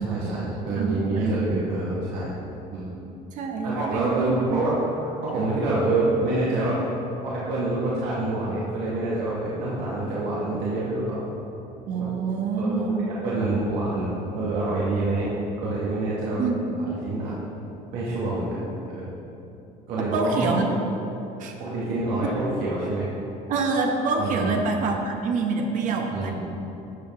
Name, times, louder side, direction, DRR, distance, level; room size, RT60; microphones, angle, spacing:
voice 1, 0.0-2.4 2.7-2.9 3.6-4.7 5.2-6.8 7.2-11.2 11.9-12.1 12.6-15.3 15.6-16.4 16.8-17.4 17.9-19.1 19.9-20.6 21.6-23.1 24.2-24.5 26.1-26.3, right 2 dB, 85° right, -8 dB, 2.0 m, -27 dB
voice 2, 0.7-1.4 3.3-4.6 11.9-13.1 16.4-16.8 20.0-20.7 21.4-21.5 23.5-26.3, right 4 dB, 55° right, 2 dB, 1.1 m, -26 dB
12.0 x 7.0 x 3.8 m, 2.9 s
cardioid pair, 135°, 16 cm